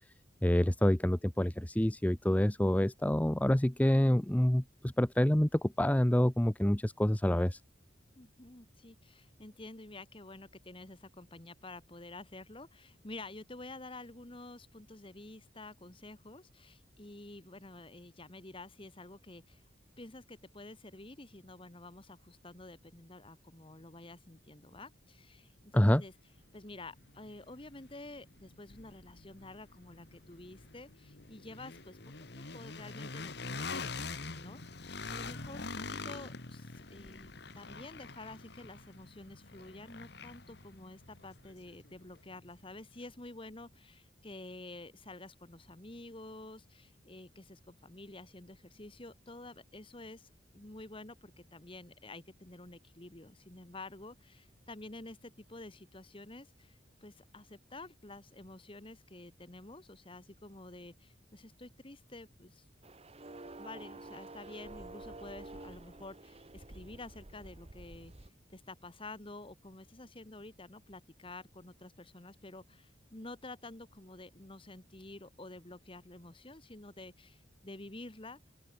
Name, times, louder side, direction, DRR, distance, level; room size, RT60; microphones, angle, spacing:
voice 1, 0.4-7.6 25.7-26.0, left 1 dB, 10° left, 0.6 m, -27 dB
voice 2, 8.2-19.6 20.0-26.1 26.5-32.0 32.3-34.6 35.1-62.7 63.6-78.4, left 2 dB, 30° left, 1.8 m, -50 dB
sound 1, 26.0-26.1 26.6-42.5, left 4 dB, 60° left, 2.0 m, -45 dB
sound 2, 62.8-68.3, right 2 dB, 30° right, 1.3 m, -49 dB
open air
head